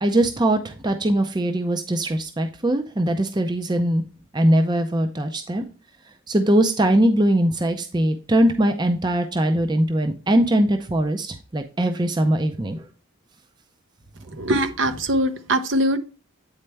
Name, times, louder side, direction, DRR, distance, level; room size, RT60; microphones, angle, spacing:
voice 1, 0.0-4.0 4.3-5.6 6.3-12.8, right 1 dB, 20° right, 0.5 m, -21 dB
voice 2, 14.4-16.0, right 1 dB, 60° right, 0.7 m, -22 dB
8.7 x 4.3 x 3.3 m
head